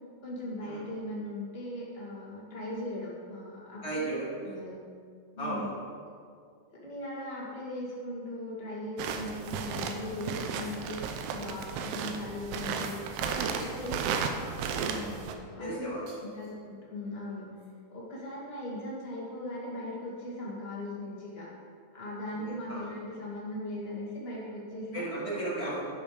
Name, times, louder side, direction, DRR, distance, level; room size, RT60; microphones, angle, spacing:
voice 1, 0.2-4.1 4.4-4.8 5.3-5.7 6.7-11.0 11.3-13.0 13.5-14.0 14.8-15.9 16.3-17.5 17.9-21.5 21.9-25.1, left 1 dB, 85° left, -7 dB, 0.5 m, -39 dB
voice 2, 3.8-4.3 5.4-5.7 13.2-14.0 15.6-16.0 22.3-22.8 24.9-25.8, right 1 dB, 25° left, -8 dB, 2.5 m, -36 dB
sound 1, 9.0-15.4, right 6 dB, 80° right, 3.1 m, -34 dB
sound 2, 13.6-14.0 14.7-15.2 16.1-16.6 17.6-17.7, right 1 dB, 60° right, 5.2 m, -56 dB
12.5 x 9.1 x 5.2 m, 2.3 s
omnidirectional pair, 5.8 m